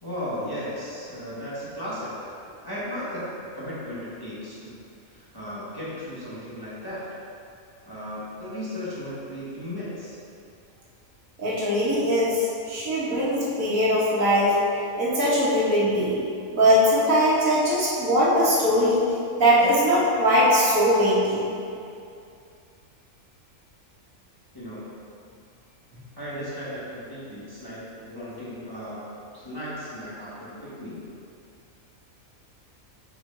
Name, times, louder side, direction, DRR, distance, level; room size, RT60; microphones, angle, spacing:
voice 1, 0.0-2.3 2.6-3.3 3.5-4.7 5.1-7.0 7.8-10.2 24.5-24.9 26.2-29.1 29.3-31.0, equal, 15° left, -11 dB, 1.4 m, -35 dB
voice 2, 11.4-14.6 15.0-16.2 16.5-19.0 19.4-21.4, equal, 70° right, -7 dB, 1.7 m, -21 dB
5.9 x 4.5 x 3.8 m, 2.5 s
omnidirectional pair, 1.5 m